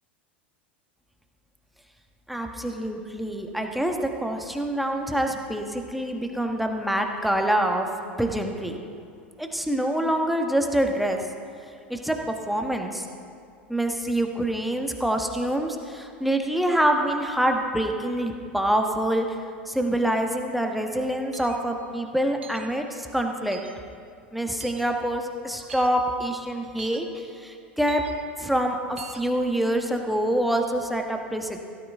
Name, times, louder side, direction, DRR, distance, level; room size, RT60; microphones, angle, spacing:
voice 1, 2.3-7.9 8.2-8.8 9.4-11.2 11.9-13.1 13.7-19.3 19.7-23.6 24.3-28.0 28.4-31.6, right 1 dB, ahead, 3 dB, 1.4 m, -26 dB
sound 1, 21.3-21.6 22.4-22.7 23.5-23.7 24.6-24.8 25.7-25.9 26.8-27.0 27.9-28.1 29.0-29.2, right 6 dB, 80° right, 1.3 m, -42 dB
16.5 x 14.0 x 3.7 m, 2.4 s
figure-of-eight pair, 85°, 6 cm